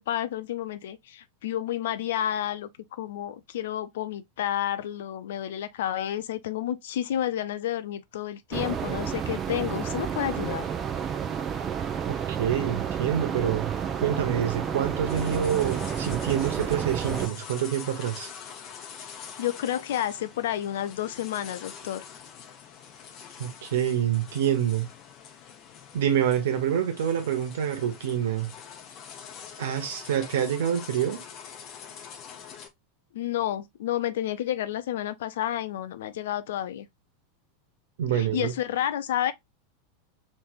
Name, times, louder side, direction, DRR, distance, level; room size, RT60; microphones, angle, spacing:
voice 1, 0.0-10.7 19.4-22.0 33.1-36.9 38.1-39.3, left 11 dB, 65° left, 0.4 m, -30 dB
sound 1, 8.5-17.3, right 8 dB, 30° right, 0.6 m, -30 dB
voice 2, 12.1-13.7 14.0-18.3 23.4-24.9 25.9-28.5 29.6-31.2 38.0-38.5, right 9 dB, 65° right, 1.0 m, -27 dB
sound 2, 15.1-32.7, left 7 dB, 40° left, 0.8 m, -45 dB
3.2 x 3.2 x 2.4 m
figure-of-eight pair, 90°, 0 cm